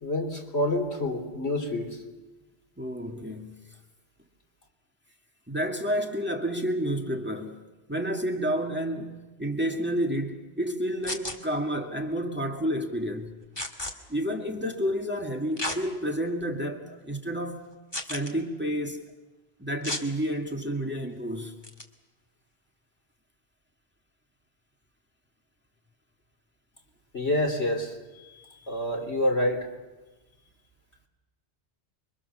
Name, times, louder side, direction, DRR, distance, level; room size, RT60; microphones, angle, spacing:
voice 1, 0.0-1.9 27.1-27.9 28.7-29.7, left 1 dB, 80° left, 4.1 m, -27 dB
voice 2, 2.8-3.6 5.5-7.6 7.9-13.3 14.1-17.7 18.1-19.0 19.6-21.6 28.2-28.7, equal, 10° right, 2.2 m, -30 dB
sound 1, 11.0-11.4 13.6-13.9 15.6-15.8 16.4-16.5 17.9-18.3 19.8-20.1 21.6-21.8, left 1 dB, 20° left, 2.2 m, -32 dB
29.0 x 24.5 x 7.0 m
omnidirectional pair, 1.1 m